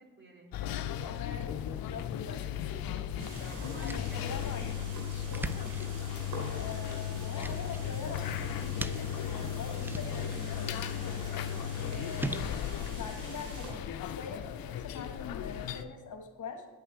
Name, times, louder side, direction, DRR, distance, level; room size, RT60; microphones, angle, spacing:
voice 1, 0.0-1.4 2.3-4.4 11.2-11.5, right 2 dB, 30° right, 0 dB, 3.5 m, -55 dB
sound 1, 0.5-15.8, left 10 dB, 70° left, 0.7 m, -36 dB
voice 2, 1.1-2.8 3.8-5.9 6.5-10.3 11.8-16.7, left 5 dB, 55° left, 4 dB, 1.5 m, -44 dB
sound 2, 2.8-14.0, right 1 dB, 5° right, 0.4 m, -44 dB
sound 3, 3.2-13.7, right 2 dB, 85° right, 3.0 m, -46 dB
10.0 x 5.6 x 7.5 m, 1.2 s
supercardioid pair, 45°, 36 cm